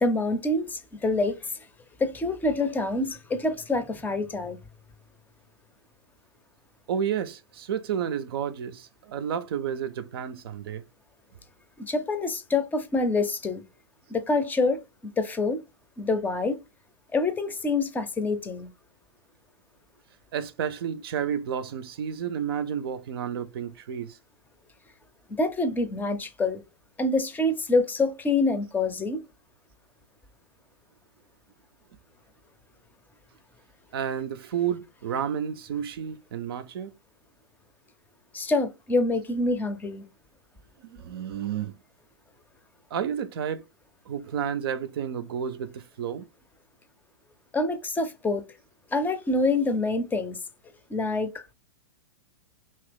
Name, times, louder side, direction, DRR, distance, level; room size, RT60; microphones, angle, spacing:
voice 1, 0.0-1.4 2.0-4.6 11.8-13.6 14.1-14.8 15.2-15.6 16.0-16.6 17.1-18.7 25.4-26.6 27.0-29.2 38.3-40.0 47.5-48.4 48.9-50.4 50.9-51.5, left 2 dB, 15° left, 0.6 m, -26 dB
voice 2, 6.9-10.8 20.3-24.2 33.9-36.9 40.8-41.7 42.9-43.6 44.1-46.3, right 8 dB, 65° right, 0.5 m, -31 dB
2.9 x 2.8 x 3.4 m
hypercardioid pair, 110°, 14 cm